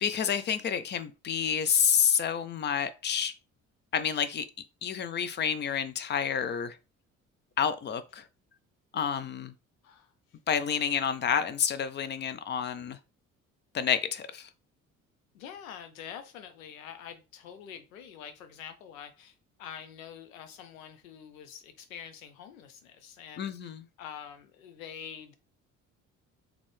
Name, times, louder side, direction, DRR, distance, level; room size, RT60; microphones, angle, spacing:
voice 1, 0.0-3.3 3.9-4.5 4.8-6.8 7.6-8.2 8.9-9.5 10.5-13.0 13.7-14.5 23.4-23.8, left 8 dB, 30° left, 0.4 m, -29 dB
voice 2, 9.8-10.4 15.3-23.7 24.0-25.3, left 8 dB, 75° left, 0.6 m, -46 dB
3.7 x 2.3 x 3.2 m
figure-of-eight pair, 50°, 41 cm